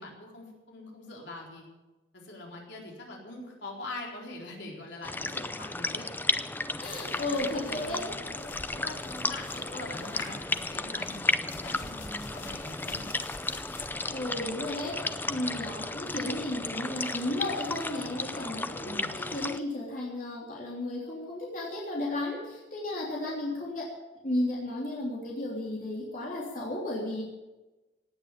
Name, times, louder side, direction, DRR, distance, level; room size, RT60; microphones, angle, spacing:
voice 1, 0.0-1.6 2.1-6.1 7.2-13.1 14.3-14.5 18.8-19.1, left 2 dB, 65° left, -1 dB, 4.1 m, -43 dB
sound 1, 5.0-19.6, left 2 dB, 10° left, 0.5 m, -34 dB
sound 2, 6.7-16.7, left 3 dB, 80° left, 3.7 m, -49 dB
voice 2, 6.8-8.1 14.1-23.9 24.2-27.2, left 1 dB, 45° left, -4 dB, 3.4 m, -34 dB
17.5 x 9.0 x 8.3 m, 1.1 s
head